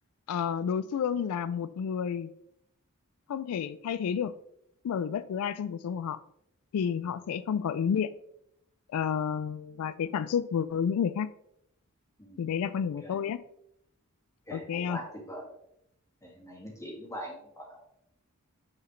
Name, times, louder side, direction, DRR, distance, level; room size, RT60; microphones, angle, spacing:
voice 1, 0.3-2.3 3.3-4.3 4.8-6.2 6.7-8.1 8.9-11.3 12.4-13.4 14.5-15.0, left 7 dB, 80° left, 14 dB, 0.3 m, -30 dB
voice 2, 14.5-15.5 16.2-17.8, equal, 15° left, -2 dB, 2.1 m, -42 dB
9.4 x 4.8 x 3.1 m, 0.75 s
head